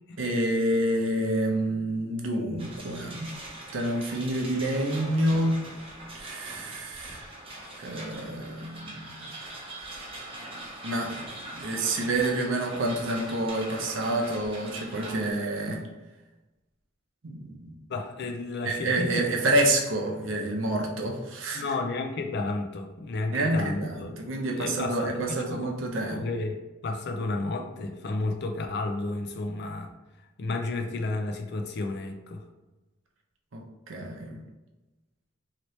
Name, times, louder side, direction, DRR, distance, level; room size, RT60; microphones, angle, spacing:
voice 1, 0.2-3.3 3.7-5.6 6.1-7.3 7.8-9.1 10.8-11.3 11.5-15.8 17.2-17.8 18.6-21.6 23.3-26.3 33.5-34.4, right 1 dB, 85° right, 1 dB, 0.7 m, -28 dB
sound 1, 2.6-15.3, right 1 dB, 30° right, 0.7 m, -42 dB
voice 2, 17.9-19.2 21.5-24.1 24.5-25.7 26.1-26.6 26.8-29.9 30.4-32.4, left 2 dB, 60° left, 4 dB, 0.4 m, -32 dB
2.9 x 2.8 x 3.1 m, 1.1 s
head